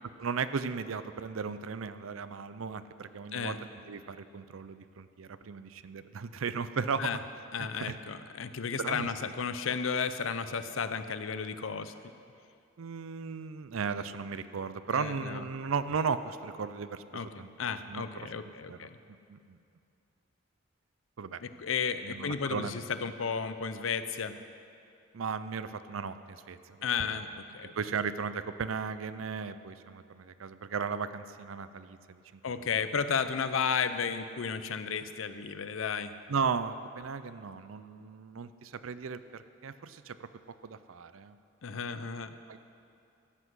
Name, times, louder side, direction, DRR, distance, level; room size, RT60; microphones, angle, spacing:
voice 1, 0.2-3.6 3.9-7.1 7.6-8.0 8.8-9.1 12.8-17.5 17.9-18.3 18.7-18.9 19.3-19.6 21.2-21.4 22.0-22.8 25.1-26.9 27.6-32.7 36.3-40.3 40.6-41.4 42.5-42.6, right 5 dB, 80° right, 13 dB, 0.5 m, -36 dB
voice 2, 7.5-11.9 14.9-15.4 17.1-17.3 17.6-19.0 21.4-24.3 26.8-27.7 32.4-36.1 41.6-42.4, left 6 dB, 75° left, 11 dB, 0.6 m, -33 dB
14.5 x 8.1 x 6.2 m, 2.5 s
head